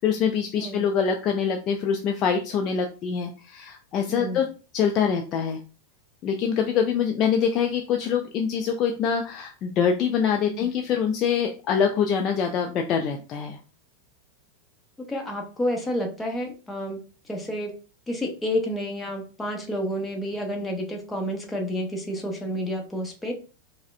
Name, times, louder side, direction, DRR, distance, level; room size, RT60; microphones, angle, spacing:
voice 1, 0.0-4.5 4.7-5.6 6.2-13.6, left 7 dB, 35° left, 4 dB, 0.4 m, -24 dB
voice 2, 4.1-4.4 10.4-10.7 15.1-17.0 17.2-17.7 18.1-23.3, equal, 10° left, 1 dB, 0.9 m, -30 dB
4.6 x 2.1 x 2.5 m, 0.34 s
figure-of-eight pair, 90°, 0 cm